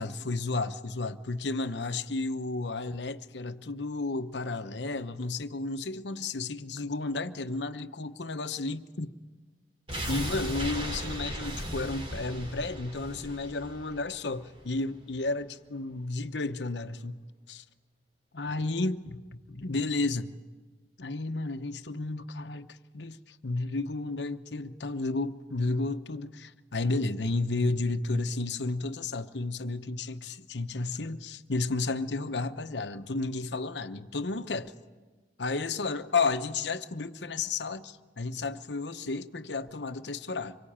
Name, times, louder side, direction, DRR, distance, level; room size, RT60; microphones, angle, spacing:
voice 1, 0.0-9.1 10.1-17.6 18.3-19.2 19.5-20.3 21.0-34.7 35.4-40.6, left 3 dB, 75° left, 1.0 m, -32 dB
sound 1, 9.9-14.8 15.1-15.2, right 1 dB, 30° right, 3.2 m, -36 dB
25.5 x 23.0 x 8.8 m
head